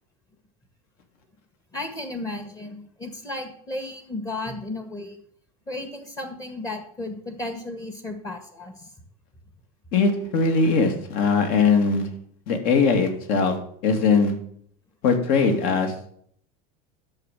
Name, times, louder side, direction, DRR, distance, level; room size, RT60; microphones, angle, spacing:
voice 1, 1.7-5.2 5.7-8.9, left 2 dB, 20° left, 7 dB, 1.7 m, -34 dB
voice 2, 9.9-12.0 12.5-13.6 13.8-14.3 15.0-15.9, left 4 dB, 50° left, 6 dB, 2.7 m, -20 dB
10.5 x 7.3 x 7.7 m, 0.62 s
supercardioid pair, 155°, 19 cm